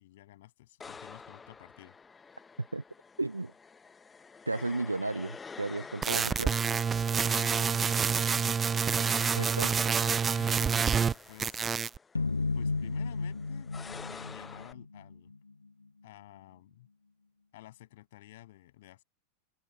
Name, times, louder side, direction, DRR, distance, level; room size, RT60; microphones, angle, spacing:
voice 1, 0.0-2.0 7.3-8.8 9.7-11.7 12.5-15.3 16.0-16.9 17.5-19.0, left 16 dB, 55° left, 7.9 m, -52 dB
sound 1, 0.8-14.7, left 5 dB, 15° left, 0.8 m, -49 dB
voice 2, 3.2-3.5 4.5-6.6 9.4-9.7, right 2 dB, 85° right, 0.6 m, -34 dB
sound 2, 6.0-11.1 11.4-12.0, right 6 dB, 20° right, 0.3 m, -27 dB
sound 3, 12.2-15.4, left 3 dB, 80° left, 0.4 m, -33 dB
open air
figure-of-eight pair, 90°, 0 cm